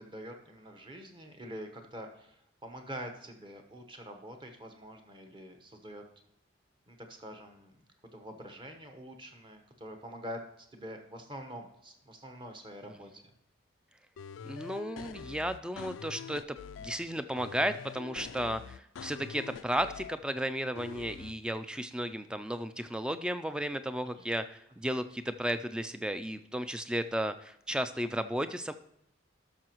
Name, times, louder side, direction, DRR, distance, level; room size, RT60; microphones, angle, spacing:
voice 1, 0.0-6.0 6.9-7.7 8.1-13.2 24.1-24.3, equal, 25° right, 4 dB, 1.0 m, -45 dB
sound 1, 14.2-17.0 17.4-20.2 20.8-21.3, left 6 dB, 85° left, 0.3 m, -45 dB
voice 2, 14.4-16.4 16.8-28.7, equal, 5° right, 10 dB, 0.3 m, -34 dB
12.5 x 6.2 x 3.0 m, 0.77 s
head